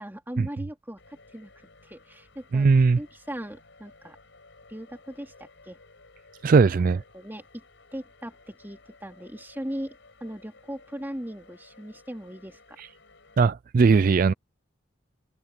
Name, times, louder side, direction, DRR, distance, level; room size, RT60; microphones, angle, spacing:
voice 1, 0.0-1.5 1.8-2.7 3.0-4.2 4.7-5.8 7.1-7.4 7.9-10.0 10.2-12.6, equal, 10° right, 2.9 m, -38 dB
sound 1, 1.0-13.5, left 3 dB, 65° left, 6.3 m, -55 dB
voice 2, 2.5-3.0 6.4-7.0 12.8-12.9 13.4-14.3, right 4 dB, 45° right, 0.3 m, -19 dB
head